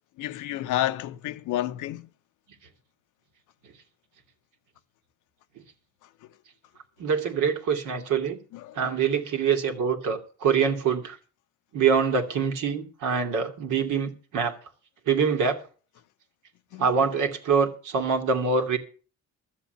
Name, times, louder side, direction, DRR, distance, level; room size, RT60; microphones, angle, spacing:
voice 1, 0.2-2.1 8.5-8.8 16.7-16.9, left 13 dB, 90° left, 0.8 m, -30 dB
voice 2, 7.0-8.4 8.7-11.2 11.7-14.5 15.1-15.6 16.8-18.8, right 6 dB, 85° right, 2.4 m, -24 dB
12.5 x 7.6 x 7.8 m
cardioid pair, 90°, 30 cm